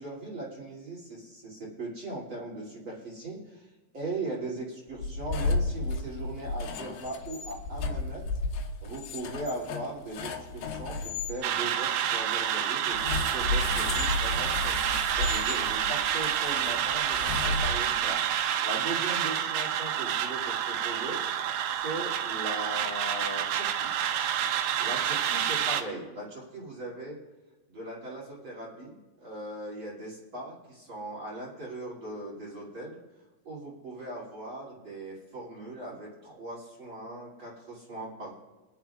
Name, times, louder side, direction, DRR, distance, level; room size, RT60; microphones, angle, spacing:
voice 1, 0.0-3.7 3.9-8.2 8.8-14.8 15.1-18.2 18.6-21.2 21.7-23.9 24.8-27.2 27.7-33.0 33.4-38.3, right 2 dB, 35° right, -6 dB, 2.6 m, -39 dB
sound 1, 4.9-11.4 12.9-18.2, left 3 dB, 75° left, 2.4 m, -33 dB
sound 2, 11.4-25.8, right 10 dB, 80° right, 2.7 m, -28 dB
27.5 x 10.5 x 2.4 m, 1.2 s
omnidirectional pair, 5.6 m